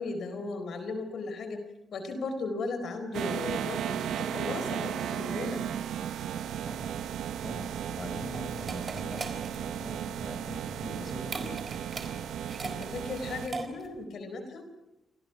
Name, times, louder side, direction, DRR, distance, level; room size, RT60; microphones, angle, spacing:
voice 1, 0.0-1.6 1.9-5.6 12.5-14.6, left 3 dB, 65° left, 8 dB, 4.4 m, -36 dB
sound 1, 3.1-13.5, right 9 dB, 90° right, 1.1 m, -35 dB
voice 2, 6.5-7.1 7.4-11.6, left 1 dB, 20° left, 7 dB, 5.6 m, -43 dB
sound 2, 7.8-14.0, right 4 dB, 35° right, 4.1 m, -41 dB
29.0 x 26.5 x 6.0 m, 0.94 s
cardioid pair, 115°, 0 cm